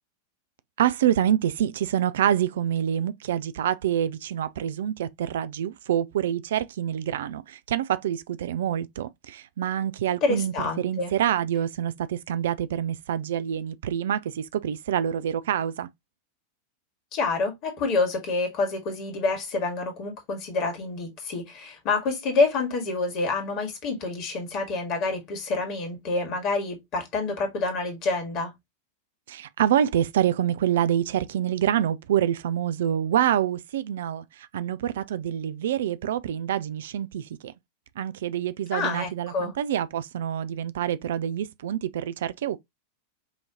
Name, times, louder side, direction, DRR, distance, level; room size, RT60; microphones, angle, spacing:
voice 1, 0.8-15.9 29.3-37.5 38.0-42.6, right 10 dB, 60° right, 0.3 m, -26 dB
voice 2, 10.0-11.1 17.1-28.5 38.7-39.5, left 3 dB, 40° left, 1.8 m, -27 dB
5.4 x 2.8 x 2.9 m
figure-of-eight pair, 90°, 0 cm